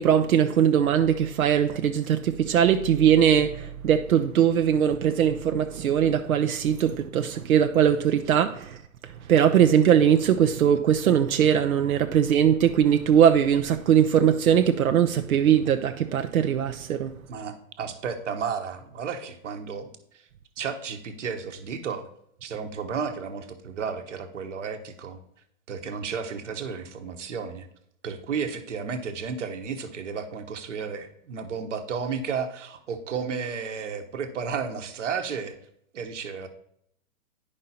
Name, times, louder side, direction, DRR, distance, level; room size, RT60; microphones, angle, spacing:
voice 1, 0.0-8.8 9.3-17.1, right 9 dB, 85° right, 7 dB, 0.8 m, -21 dB
voice 2, 17.3-19.9 20.6-22.1 22.4-25.2 25.7-27.7 28.0-35.6 35.9-36.5, right 6 dB, 60° right, 8 dB, 1.2 m, -33 dB
10.5 x 5.4 x 4.2 m, 0.72 s
hypercardioid pair, 175°, 41 cm